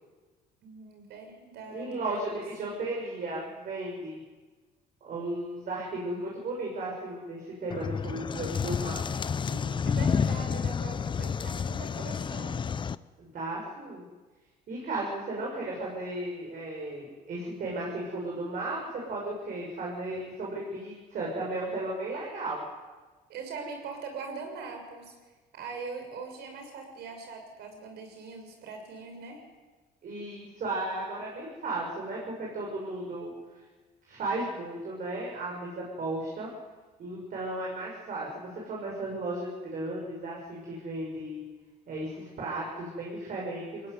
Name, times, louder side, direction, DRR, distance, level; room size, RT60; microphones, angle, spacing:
voice 1, 0.6-2.0 2.3-2.4 9.5-12.7 23.3-25.2 25.5-29.4, right 4 dB, 75° right, 4 dB, 6.2 m, -42 dB
voice 2, 1.7-4.2 5.0-9.0 13.2-14.0 14.7-22.6 30.0-33.3 34.1-36.5 37.0-41.4 41.9-43.9, right 2 dB, 55° right, -3 dB, 6.8 m, -35 dB
sound 1, 7.7-13.0, left 6 dB, 30° left, 0.6 m, -30 dB
22.0 x 17.0 x 9.6 m, 1.3 s
cardioid pair, 110°, 17 cm